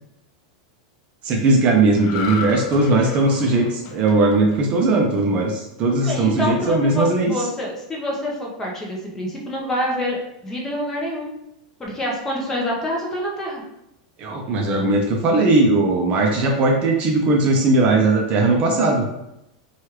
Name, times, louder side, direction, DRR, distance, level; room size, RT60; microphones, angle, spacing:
voice 1, 1.2-7.5 14.2-19.0, right 2 dB, 35° right, 1 dB, 0.4 m, -18 dB
sound 1, 1.9-5.4 5.8-6.1, left 5 dB, 45° left, 0.4 m, -34 dB
voice 2, 6.0-10.2 10.4-11.3 11.8-13.6, left 1 dB, 10° left, -3 dB, 0.7 m, -26 dB
3.0 x 2.3 x 3.0 m, 0.85 s
supercardioid pair, 145°, 4 cm